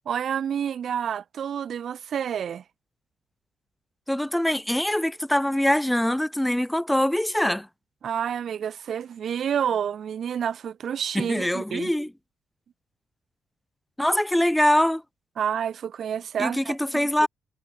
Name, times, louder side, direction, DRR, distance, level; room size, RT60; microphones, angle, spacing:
voice 1, 0.1-2.6 8.0-11.9 15.4-17.3, right 8 dB, 60° right, 0.4 m, -29 dB
voice 2, 4.1-7.7 11.1-12.1 14.0-15.0 16.4-17.3, left 1 dB, 5° left, 0.6 m, -23 dB
cardioid pair, 90°, 0 cm